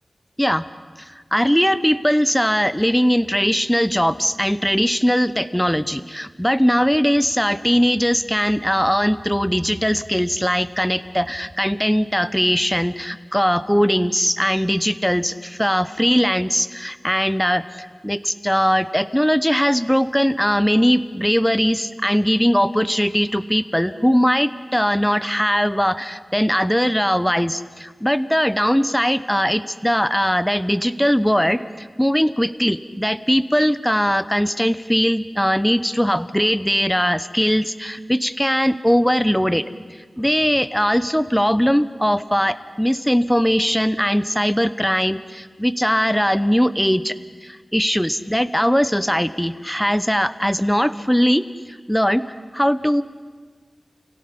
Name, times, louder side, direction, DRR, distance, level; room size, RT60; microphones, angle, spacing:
voice 1, 1.0-39.6 40.2-47.2 47.4-52.2 52.5-53.0, equal, 5° left, 14 dB, 0.9 m, -20 dB
29.5 x 17.0 x 5.6 m, 1.5 s
wide cardioid pair, 50°, 0 cm